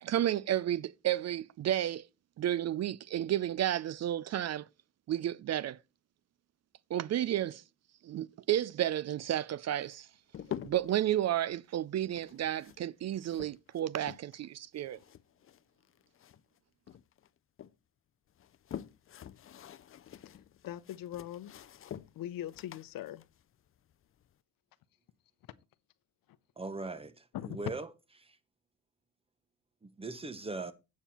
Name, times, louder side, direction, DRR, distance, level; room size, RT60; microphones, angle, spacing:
voice 1, 0.0-2.1 2.4-4.7 5.1-5.8 6.9-7.6 8.0-10.1 10.6-15.0, right 12 dB, 50° right, 0.4 m, -32 dB
sound 1, 9.7-11.0 12.1-14.5 14.7-16.6 16.9-17.7 18.3-24.3, left 10 dB, 40° left, 0.5 m, -47 dB
voice 2, 20.6-21.5 22.1-23.2 27.3-27.7, left 12 dB, 85° left, 0.7 m, -40 dB
voice 3, 26.6-27.9 28.2-28.3 29.8-30.7, right 3 dB, 15° right, 0.9 m, -40 dB
9.0 x 7.4 x 4.2 m
cardioid pair, 115°, 33 cm